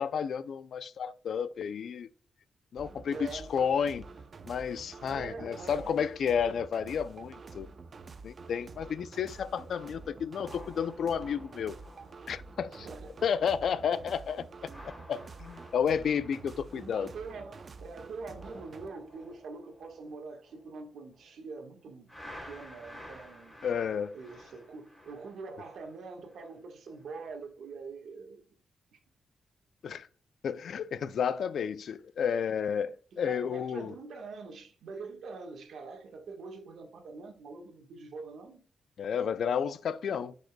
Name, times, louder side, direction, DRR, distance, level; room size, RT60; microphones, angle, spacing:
voice 1, 0.0-2.1 2.7-4.1 4.5-7.7 8.2-11.8 12.3-12.9 13.2-14.5 15.1-17.1 23.6-24.1 29.8-30.1 30.4-34.0 39.0-40.3, left 7 dB, 70° left, 0.4 m, -31 dB
sound 1, 2.8-18.9, right 4 dB, 40° right, 0.6 m, -48 dB
voice 2, 3.1-3.5 5.1-6.0 12.8-13.2 16.7-22.1 22.4-23.6 24.1-28.4 33.1-38.6, right 4 dB, 80° right, 1.4 m, -44 dB
sound 2, 9.4-13.6 13.8-14.1 14.6-17.8 18.1-21.4 22.1-26.6 27.0-27.2, equal, 5° left, 3.0 m, -53 dB
10.5 x 5.2 x 2.2 m
wide cardioid pair, 145°, 0 cm